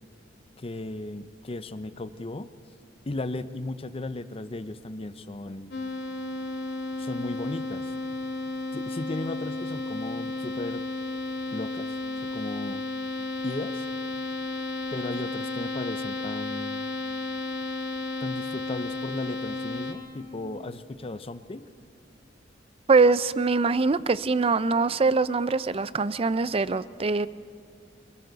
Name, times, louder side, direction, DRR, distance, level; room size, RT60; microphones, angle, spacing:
voice 1, 0.6-2.5 3.1-5.7 7.0-7.9 8.7-10.8 11.5-12.0 12.2-12.8 13.4-13.9 14.9-16.8 18.2-21.7, left 2 dB, 30° left, 13 dB, 0.6 m, -36 dB
sound 1, 5.7-19.9, left 2 dB, 65° left, 2.9 m, -33 dB
voice 2, 22.9-27.3, right 4 dB, 30° right, 16 dB, 0.4 m, -23 dB
29.0 x 22.5 x 4.0 m, 2.3 s
head